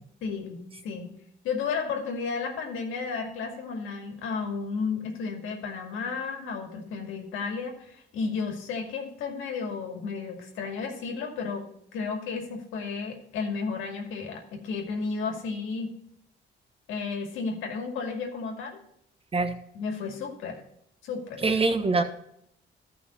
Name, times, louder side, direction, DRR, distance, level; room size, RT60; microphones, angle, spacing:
voice 1, 0.2-1.2 1.4-11.7 11.9-15.9 16.9-18.8 19.7-20.6 21.0-21.6, left 5 dB, 90° left, 2 dB, 2.3 m, -33 dB
voice 2, 21.4-22.0, right 3 dB, 30° right, 7 dB, 1.4 m, -23 dB
13.5 x 5.7 x 4.3 m, 0.74 s
cardioid pair, 90°, 20 cm